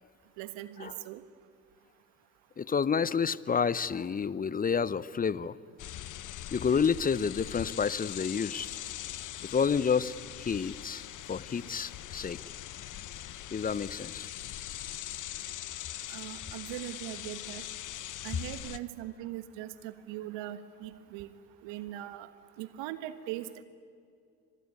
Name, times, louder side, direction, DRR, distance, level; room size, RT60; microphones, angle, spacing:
voice 1, 0.4-1.2 16.1-17.6 18.2-21.3 21.6-22.3 22.6-23.6, right 13 dB, 60° right, 12 dB, 1.6 m, -40 dB
voice 2, 2.6-5.6 6.5-8.7 9.4-11.0 11.3-12.4 13.5-14.3, left 6 dB, 20° left, 19 dB, 0.6 m, -29 dB
sound 1, 5.8-18.8, left 12 dB, 40° left, 0.9 m, -42 dB
25.5 x 20.5 x 9.7 m, 2.4 s
hypercardioid pair, 65°, 49 cm